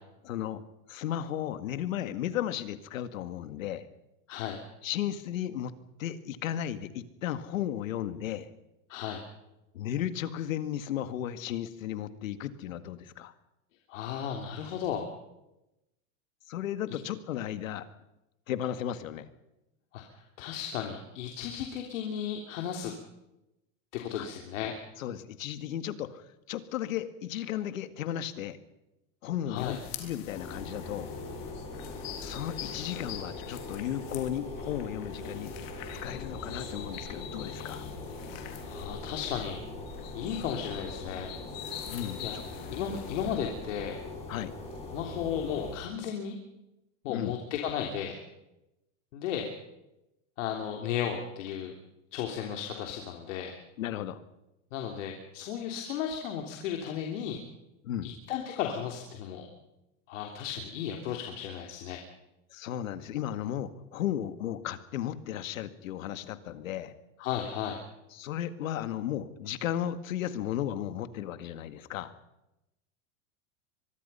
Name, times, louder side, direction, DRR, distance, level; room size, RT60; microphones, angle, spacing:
voice 1, 0.2-0.6 0.9-3.9 4.8-5.7 6.0-8.5 9.7-13.3 16.5-17.9 18.5-19.3 24.1-24.3 25.0-28.6 29.2-31.1 32.2-35.8 36.0-37.9 41.8-42.4 44.3-44.5 47.1-47.3 53.8-54.2 57.8-58.1 62.5-66.9 68.1-72.1, left 11 dB, 90° left, 11 dB, 2.0 m, -35 dB
voice 2, 4.3-4.6 8.9-9.2 13.9-15.1 19.9-22.9 23.9-24.7 29.5-29.7 38.3-39.6 40.1-41.3 42.2-42.4 42.7-44.0 44.9-46.3 47.0-48.2 49.1-49.5 50.4-51.7 52.1-53.5 54.7-57.4 58.0-59.5 60.1-62.0 67.2-67.8, left 8 dB, 65° left, 2 dB, 3.4 m, -34 dB
sound 1, 29.6-43.4, left 10 dB, 50° left, 3.6 m, -45 dB
sound 2, 30.3-45.8, left 2 dB, 15° left, 5.9 m, -41 dB
24.0 x 21.5 x 5.7 m, 0.91 s
supercardioid pair, 170°, 39 cm